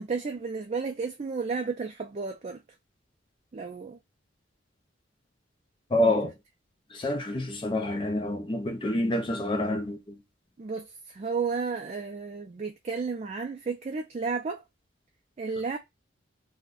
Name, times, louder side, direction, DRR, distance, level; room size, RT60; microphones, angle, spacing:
voice 1, 0.0-2.6 3.5-4.0 5.9-6.1 10.6-14.6 15.4-15.8, right 4 dB, 35° right, 0.3 m, -32 dB
voice 2, 5.9-6.3 6.9-10.2, left 1 dB, 25° left, 0.5 m, -27 dB
2.5 x 2.1 x 3.5 m
head